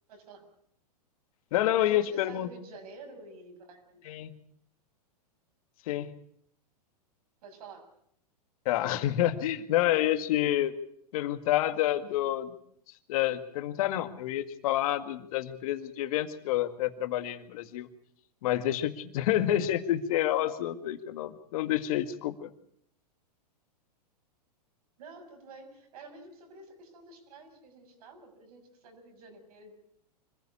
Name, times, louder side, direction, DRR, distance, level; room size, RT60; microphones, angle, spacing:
voice 1, 0.1-0.5 1.8-4.0 7.4-7.9 25.0-29.8, right 3 dB, 65° right, 5 dB, 6.9 m, -49 dB
voice 2, 1.5-2.5 4.1-4.4 5.9-6.1 8.7-10.7 11.1-12.5 13.1-17.9 18.4-22.5, left 13 dB, 60° left, 9 dB, 2.0 m, -28 dB
25.5 x 15.5 x 8.5 m, 0.69 s
hypercardioid pair, 115°, 21 cm